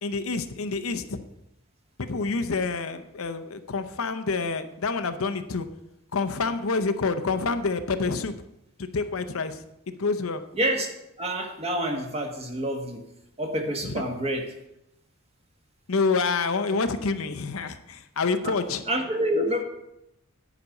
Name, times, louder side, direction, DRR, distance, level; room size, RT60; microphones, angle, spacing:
voice 1, 0.0-1.2 2.0-5.7 6.1-8.4 8.8-10.4 13.8-14.0 15.9-18.8, left 4 dB, 70° left, 9 dB, 0.7 m, -27 dB
voice 2, 10.5-10.9 11.2-13.0 13.4-14.5 18.4-18.5 18.9-19.6, equal, 30° right, 3 dB, 1.5 m, -27 dB
9.8 x 5.1 x 8.1 m, 0.84 s
head